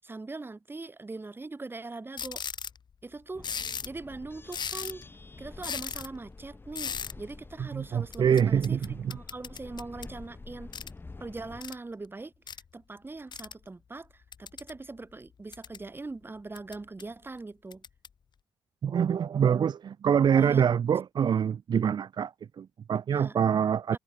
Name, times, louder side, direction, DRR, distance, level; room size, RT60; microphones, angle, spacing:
voice 1, 0.0-2.4 3.0-3.5 3.8-5.1 5.4-10.7 11.2-17.8 20.3-20.6 23.1-23.4 23.9-24.0, right 3 dB, 25° right, 7.7 m, -41 dB
sound 1, 2.2-2.8 3.4-4.0 4.5-5.1 5.6-6.1 6.7-7.1 8.1-10.1 10.7-10.9 11.6-11.7 12.5-12.6 13.3-13.5 14.3-14.8 15.3-15.8 16.5-17.0 17.7-18.1, left 7 dB, 55° left, 1.4 m, -37 dB
sound 2, 3.3-11.6, left 3 dB, 25° left, 4.6 m, -48 dB
voice 2, 7.7-9.1 18.8-22.3 22.6-24.0, right 8 dB, 55° right, 0.5 m, -25 dB
wide cardioid pair, 110°, 9 cm